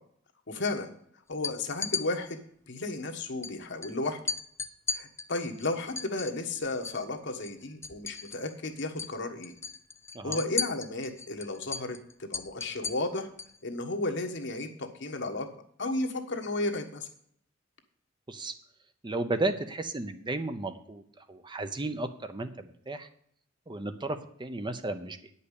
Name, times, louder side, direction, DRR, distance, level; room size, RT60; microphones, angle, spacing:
voice 1, 0.5-0.9 1.3-2.4 2.7-4.2 4.9-9.5 10.2-13.3 13.6-15.5 15.8-17.1, left 2 dB, 60° left, 4 dB, 1.4 m, -33 dB
sound 1, 1.3-2.0 3.4-3.5 3.8-3.9 4.3-7.0 7.3-8.5 8.8-9.1 9.4-13.6, left 5 dB, 15° left, 0.5 m, -35 dB
voice 2, 19.0-21.0 21.3-23.1 23.7-25.3, right 2 dB, 25° right, 8 dB, 0.7 m, -34 dB
9.5 x 5.5 x 8.3 m, 0.66 s
head